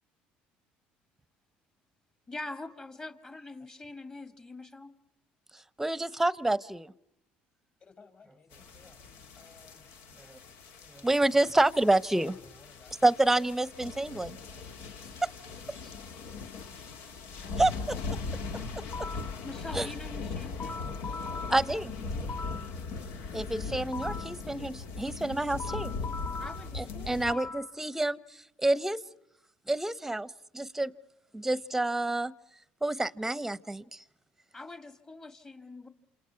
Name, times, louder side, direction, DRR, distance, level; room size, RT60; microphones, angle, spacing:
voice 1, 2.3-5.0 15.8-15.9 19.4-20.8 26.4-27.5 34.5-35.9, left 2 dB, 25° left, 9 dB, 2.0 m, -44 dB
voice 2, 5.8-6.9 10.3-10.4 10.9-12.3 13.0-14.4 15.2-15.3 17.6-18.0 19.0-19.1 19.7-19.9 21.5-21.9 23.3-25.9 26.7-28.2 28.6-29.0 29.7-30.3 30.5-30.9 31.3-32.3 32.8-34.0, right 2 dB, 10° right, 18 dB, 0.9 m, -28 dB
voice 3, 7.8-9.0 9.4-9.9 12.1-13.0, left 5 dB, 40° left, 8 dB, 5.3 m, -56 dB
sound 1, 8.5-27.3, left 4 dB, 80° left, 1.7 m, -39 dB
sound 2, 18.5-19.4 20.2-22.7 23.5-24.4 25.2-27.7, left 4 dB, 60° left, 2.9 m, -41 dB
28.0 x 28.0 x 5.8 m, 0.80 s
supercardioid pair, 90°, 4 cm